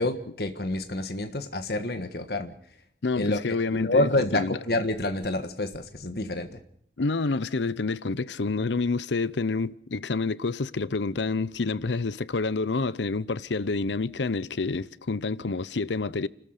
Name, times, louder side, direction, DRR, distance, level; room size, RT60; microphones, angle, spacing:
voice 1, 0.0-2.5 3.2-3.4 3.7-6.6, left 2 dB, 60° left, 1.5 m, -28 dB
voice 2, 3.0-4.6 7.0-16.3, left 3 dB, 90° left, 0.7 m, -28 dB
29.5 x 13.5 x 6.6 m
head